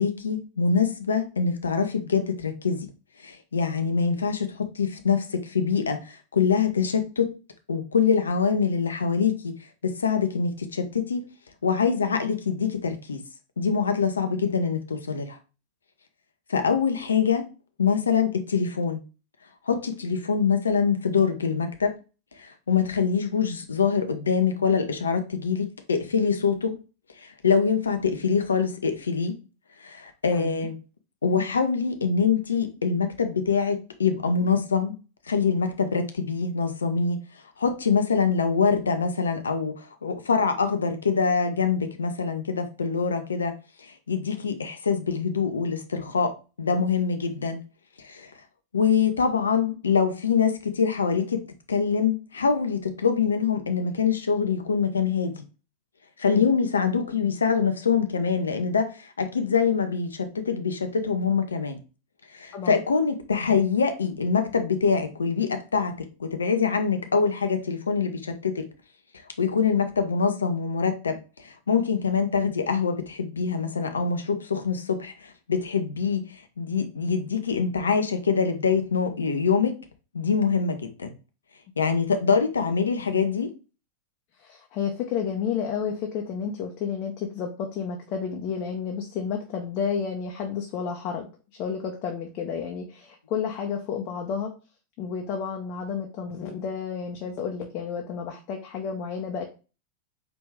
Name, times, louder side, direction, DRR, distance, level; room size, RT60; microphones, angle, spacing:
voice 1, 0.0-2.9 3.2-7.3 7.7-9.5 9.8-11.2 11.6-13.2 13.6-15.4 16.5-17.5 17.8-19.0 19.7-22.0 22.3-26.8 27.2-29.4 29.8-30.7 31.2-34.9 35.3-37.2 37.6-47.6 48.0-48.3 48.7-51.4 51.7-55.3 56.2-61.8 62.3-68.7 69.4-79.8 80.1-81.1 81.8-83.5, left 6 dB, 70° left, 0.7 m, -24 dB
voice 2, 30.3-30.7 56.3-56.5 62.5-62.8 84.4-91.3 91.6-94.5 95.0-99.4, left 6 dB, 40° left, 0.8 m, -31 dB
4.7 x 3.1 x 3.4 m
figure-of-eight pair, 90°, 0 cm